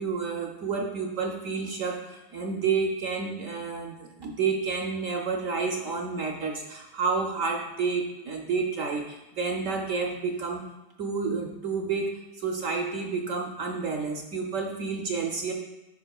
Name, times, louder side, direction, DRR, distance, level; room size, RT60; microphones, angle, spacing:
voice 1, 0.0-10.6 11.0-15.5, right 5 dB, 65° right, 1 dB, 0.8 m, -30 dB
11.0 x 5.2 x 2.3 m, 1.0 s
omnidirectional pair, 1.9 m